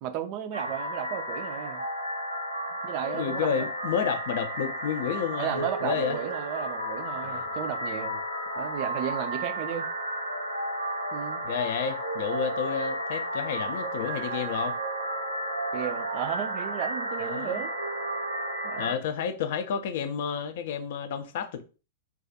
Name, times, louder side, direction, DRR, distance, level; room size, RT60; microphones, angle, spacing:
voice 1, 0.0-1.8 2.8-3.7 5.4-8.2 8.6-9.8 11.1-11.4 15.7-17.7 18.6-19.0, right 10 dB, 35° right, 0.3 m, -34 dB
sound 1, 0.5-18.9, right 1 dB, 90° right, 0.6 m, -33 dB
voice 2, 3.1-6.2 7.2-7.5 11.4-14.8 17.2-17.6 18.8-21.6, left 7 dB, 50° left, 0.4 m, -31 dB
2.3 x 2.3 x 2.6 m
figure-of-eight pair, 100°, 0 cm